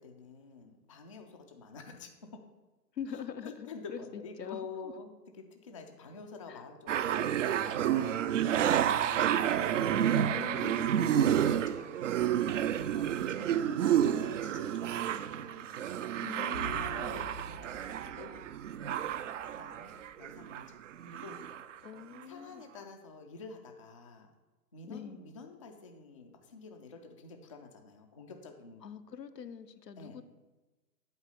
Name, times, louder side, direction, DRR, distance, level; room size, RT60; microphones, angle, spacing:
voice 1, 0.0-2.4 3.4-10.2 10.8-12.3 12.9-15.7 16.6-18.4 19.5-20.8 21.0-21.4 21.7-21.8 22.3-24.3 24.7-28.8 30.0-30.2, left 4 dB, 25° left, 3 dB, 0.3 m, -49 dB
voice 2, 2.9-4.7 6.5-6.6 10.2-11.4 16.2-17.1 21.8-22.6 24.8-25.3 28.8-30.2, left 7 dB, 85° left, 10 dB, 0.7 m, -43 dB
sound 1, 6.9-20.6 20.9-21.7 22.2-22.3, right 10 dB, 50° right, 0.5 m, -30 dB
sound 2, 16.5-20.8 21.0-21.1, right 1 dB, 80° right, 2.5 m, -48 dB
8.1 x 4.6 x 6.8 m, 1.2 s
figure-of-eight pair, 110°, 48 cm